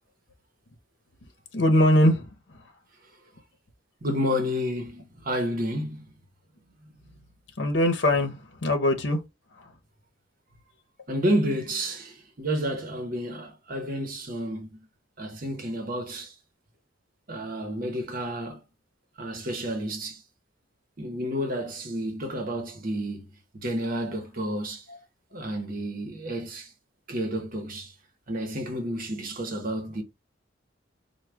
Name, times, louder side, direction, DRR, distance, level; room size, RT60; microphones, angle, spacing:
voice 1, 1.5-2.6 7.6-9.2 9.6-9.7 22.5-22.6 24.9-25.0, left 1 dB, 70° left, 0.8 m, -22 dB
voice 2, 4.0-6.1 11.1-14.7 15.2-16.3 17.3-18.6 19.2-20.2 21.0-23.3 23.5-24.8 25.3-26.7 27.1-27.9 28.3-30.0, equal, 50° right, 0.9 m, -30 dB
4.7 x 2.2 x 3.3 m
head